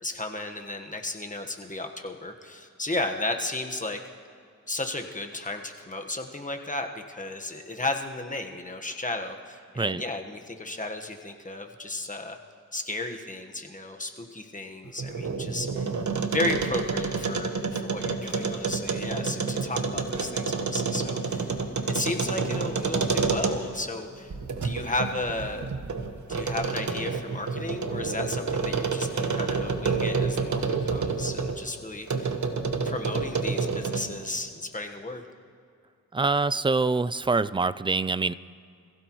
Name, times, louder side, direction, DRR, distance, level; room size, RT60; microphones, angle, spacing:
voice 1, 0.0-4.0 4.7-12.4 12.7-15.9 16.3-21.5 21.9-24.3 24.6-25.7 26.3-32.3 32.8-35.2, left 2 dB, 25° left, 4 dB, 1.3 m, -34 dB
sound 1, 14.9-23.8 24.3-31.6 32.1-34.2, right 4 dB, 65° right, 1.3 m, -29 dB
voice 2, 36.1-38.3, right 3 dB, 15° right, 15 dB, 0.4 m, -25 dB
26.5 x 16.0 x 3.1 m, 2.3 s
cardioid pair, 75°, 32 cm